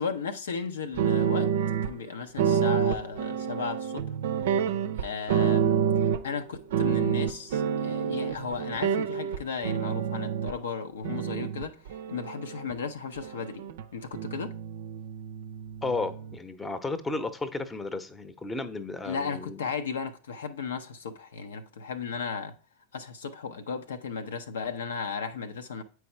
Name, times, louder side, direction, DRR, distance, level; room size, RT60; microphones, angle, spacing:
voice 1, 0.0-1.5 1.8-4.1 5.0-13.6 13.9-14.5 19.0-22.5 22.9-25.8, left 5 dB, 65° left, 0.6 m, -35 dB
sound 1, 1.0-1.9 2.4-6.4 6.7-10.5 11.0-12.7 13.2-13.8 14.1-16.4, right 8 dB, 55° right, 0.5 m, -28 dB
voice 2, 15.8-19.6, left 3 dB, 15° left, 0.8 m, -33 dB
8.4 x 4.7 x 4.3 m
figure-of-eight pair, 90°, 0 cm